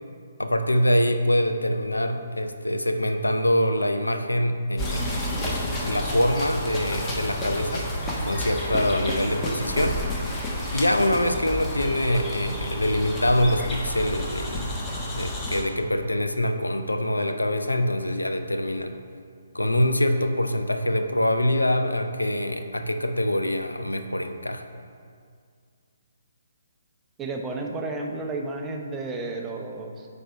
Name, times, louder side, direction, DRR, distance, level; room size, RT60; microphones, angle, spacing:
voice 1, 0.4-5.1 5.5-7.9 8.2-10.0 10.7-14.7 15.1-18.9 19.5-24.7, left 1 dB, 85° left, 7 dB, 0.5 m, -24 dB
sound 1, 4.8-15.6, left 1 dB, 15° left, 1.0 m, -30 dB
sound 2, 7.7-15.2, left 2 dB, 65° left, 1.4 m, -49 dB
voice 2, 27.2-30.1, right 3 dB, 15° right, 1 dB, 0.7 m, -32 dB
9.1 x 3.4 x 5.3 m, 2.2 s
figure-of-eight pair, 135°, 0 cm